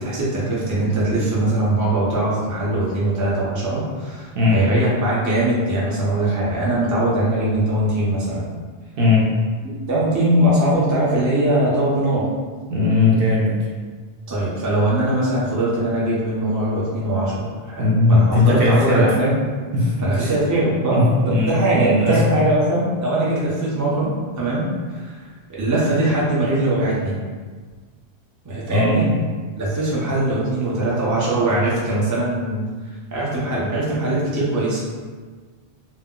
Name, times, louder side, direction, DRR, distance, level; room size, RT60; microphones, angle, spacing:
voice 1, 0.0-8.5 9.6-12.3 14.3-19.3 20.0-25.2 25.5-27.2 28.4-29.1 29.6-32.6 33.1-34.8, right 1 dB, 25° right, -7 dB, 0.4 m, -21 dB
voice 2, 9.0-9.3 12.7-13.6 17.8-19.1 19.7-20.3 20.9-22.3 28.7-29.0, left 2 dB, 60° right, -5 dB, 0.8 m, -18 dB
2.2 x 2.1 x 3.6 m, 1.5 s
omnidirectional pair, 1.2 m